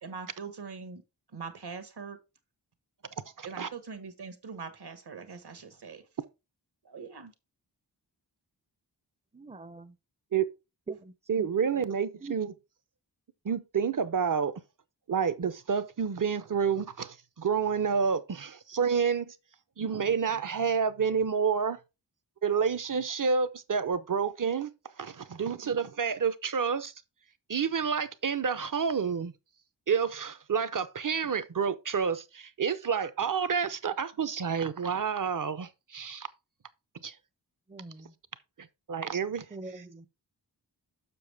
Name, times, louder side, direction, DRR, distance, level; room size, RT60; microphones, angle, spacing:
voice 1, 0.0-1.0 1.3-2.2 3.4-6.0 6.9-7.3, right 5 dB, 65° right, 1.4 m, -42 dB
voice 2, 3.4-3.7 10.3-10.5 11.3-12.5 13.4-14.5 15.1-19.3 19.8-21.8 22.4-24.7 25.0-26.9 27.5-29.3 29.9-36.3 37.0-37.1 38.9-39.4 39.7-40.1, right 6 dB, 50° right, 0.7 m, -29 dB
voice 3, 9.3-9.9 10.9-11.5 12.2-12.4 37.7-38.1 39.5-40.1, right 3 dB, 15° right, 0.6 m, -43 dB
7.0 x 6.3 x 3.4 m
wide cardioid pair, 105°, 42 cm